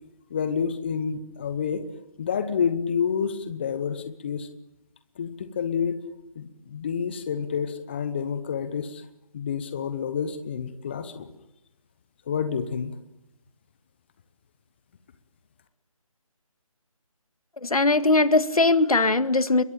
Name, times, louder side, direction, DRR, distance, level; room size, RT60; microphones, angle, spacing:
voice 1, 0.3-1.8 2.2-4.5 5.2-6.0 6.4-9.0 9.3-11.3 12.3-12.9, left 7 dB, 20° left, 10 dB, 1.0 m, -28 dB
voice 2, 17.6-19.6, left 3 dB, 80° left, 11 dB, 2.0 m, -20 dB
26.0 x 22.5 x 9.1 m, 0.93 s
figure-of-eight pair, 165°, 18 cm